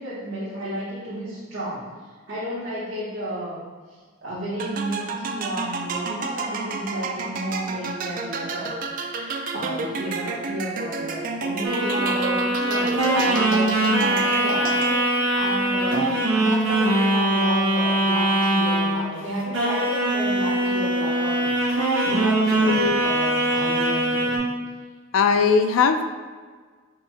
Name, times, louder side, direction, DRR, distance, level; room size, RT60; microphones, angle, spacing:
voice 1, 0.0-1.9 2.3-3.6 3.9-8.7 9.0-21.6 22.0-24.4, right 1 dB, 60° right, -10 dB, 1.0 m, -32 dB
sound 1, 4.6-15.3, right 4 dB, 40° right, 0.3 m, -30 dB
sound 2, 11.6-19.2 19.5-24.4, right 1 dB, 85° right, 1.3 m, -22 dB
voice 2, 22.7-23.0 25.1-26.1, left 5 dB, 75° left, 8 dB, 0.3 m, -19 dB
5.2 x 2.1 x 4.5 m, 1.5 s
head